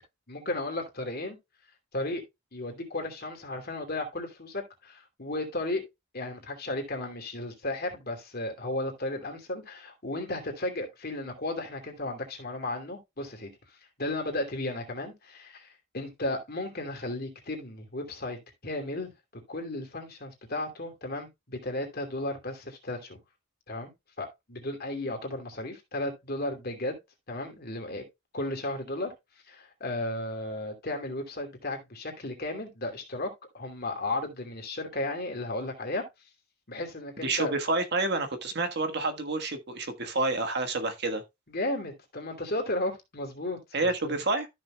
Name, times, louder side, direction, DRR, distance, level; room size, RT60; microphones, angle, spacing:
voice 1, 0.3-1.4 1.9-2.2 2.5-5.8 6.1-13.5 14.0-18.4 18.6-19.1 19.5-23.2 23.7-27.0 27.3-28.0 28.3-29.1 29.5-36.1 36.7-37.5 41.5-44.1, left 2 dB, 45° left, 2.7 m, -34 dB
voice 2, 37.2-41.2 43.7-44.5, right 2 dB, 55° right, 1.4 m, -29 dB
13.5 x 6.4 x 2.3 m
head